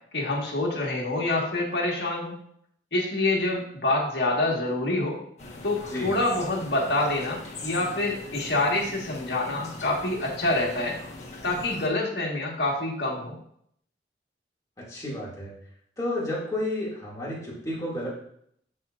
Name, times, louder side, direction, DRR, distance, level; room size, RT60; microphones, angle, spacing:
voice 1, 0.1-2.3 2.9-5.2 5.6-11.0 11.4-13.3, left 2 dB, 65° left, -2 dB, 1.6 m, -26 dB
sound 1, 5.4-11.9, left 2 dB, 40° left, 1.3 m, -41 dB
voice 2, 14.8-15.5 16.0-18.1, left 1 dB, 20° left, -5 dB, 2.3 m, -31 dB
11.5 x 4.4 x 2.5 m, 0.69 s
head